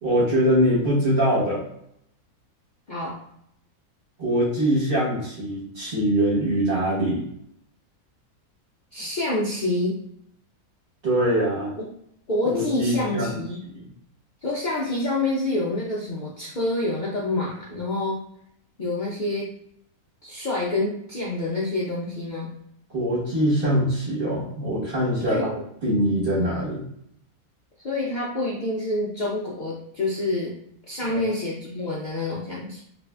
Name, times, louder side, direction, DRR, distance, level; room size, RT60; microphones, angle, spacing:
voice 1, 0.0-1.6 4.2-7.2 11.0-11.7 12.4-13.4 13.7-13.8 22.9-26.8 31.1-31.3, equal, 40° right, -6 dB, 1.2 m, -23 dB
voice 2, 8.9-10.0 11.8-11.9 12.3-13.6 14.4-18.2 18.8-19.6 20.2-22.5 25.3-25.5 27.8-30.6 30.9-32.8, left 2 dB, 80° left, -4 dB, 0.4 m, -27 dB
2.7 x 2.5 x 3.3 m, 0.73 s
omnidirectional pair, 1.6 m